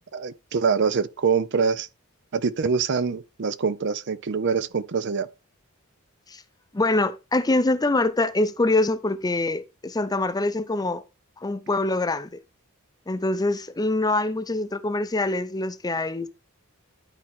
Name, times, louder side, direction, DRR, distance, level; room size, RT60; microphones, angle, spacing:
voice 1, 0.1-1.9 2.3-5.3, right 5 dB, 55° right, 0.5 m, -24 dB
voice 2, 6.7-11.0 11.4-12.4 13.1-16.3, left 2 dB, 20° left, 0.5 m, -24 dB
11.0 x 4.3 x 3.5 m
head